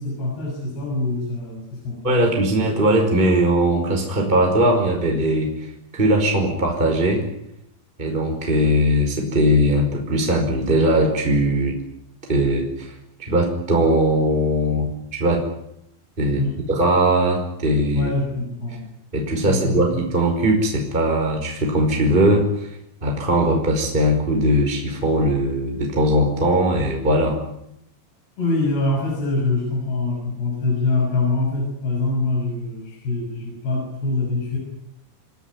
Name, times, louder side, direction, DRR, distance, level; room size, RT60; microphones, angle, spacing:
voice 1, 0.0-2.5 16.3-16.6 17.9-18.9 19.5-19.9 28.4-34.6, left 2 dB, 60° left, -1 dB, 8.5 m, -24 dB
voice 2, 2.0-5.5 5.9-7.2 8.0-11.7 12.3-12.9 13.3-15.4 16.2-16.4 16.7-18.1 19.1-22.7 23.0-27.3, right 1 dB, 10° right, 1 dB, 4.8 m, -19 dB
28.5 x 17.5 x 9.6 m, 0.77 s
omnidirectional pair, 5.2 m